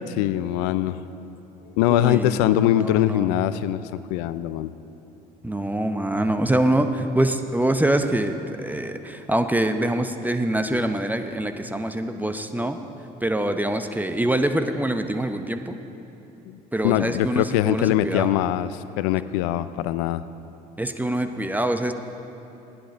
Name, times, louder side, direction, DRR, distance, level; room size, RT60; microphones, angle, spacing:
voice 1, 0.2-1.0 1.8-4.7 16.5-16.6 16.8-20.2, left 13 dB, 75° left, 15 dB, 0.4 m, -22 dB
voice 2, 1.9-3.3 5.4-12.8 13.2-15.8 16.7-18.3 20.8-21.9, right 1 dB, 10° right, 7 dB, 0.8 m, -24 dB
15.0 x 10.0 x 4.4 m, 3.0 s
hypercardioid pair, 55°, 21 cm